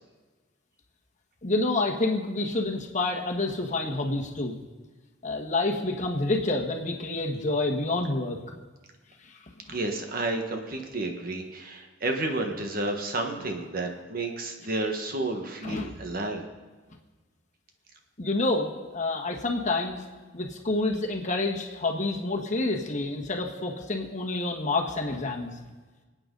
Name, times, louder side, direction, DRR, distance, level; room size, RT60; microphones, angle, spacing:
voice 1, 1.4-4.6 5.2-8.4 9.2-9.4 9.7-9.8 15.6-15.9 18.2-20.0 20.3-25.5, left 2 dB, 40° left, 2 dB, 1.4 m, -28 dB
voice 2, 9.7-16.5, right 2 dB, 50° right, 3 dB, 1.5 m, -31 dB
26.5 x 8.9 x 3.9 m, 1.3 s
head